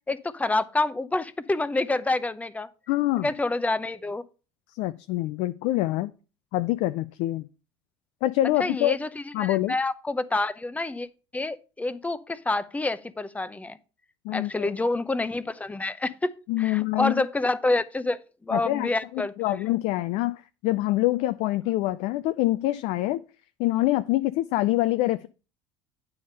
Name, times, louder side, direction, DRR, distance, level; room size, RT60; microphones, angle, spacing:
voice 1, 0.1-2.7 3.2-4.2 8.6-11.1 11.3-13.8 14.3-19.6, left 2 dB, 10° left, 0.6 m, -28 dB
voice 2, 2.9-3.3 4.7-6.1 6.5-7.5 8.2-9.0 9.3-9.8 14.2-14.7 16.5-17.2 18.5-23.2 23.6-25.3, left 16 dB, 60° left, 0.4 m, -25 dB
9.3 x 3.5 x 6.5 m
hypercardioid pair, 80°, 14 cm